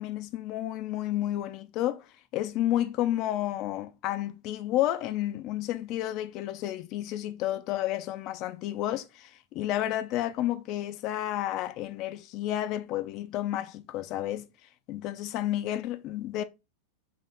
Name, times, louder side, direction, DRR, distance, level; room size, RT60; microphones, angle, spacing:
voice 1, 0.0-14.5 14.9-16.4, left 13 dB, 40° left, 0.4 m, -31 dB
3.4 x 2.6 x 3.8 m
figure-of-eight pair, 90°, 0 cm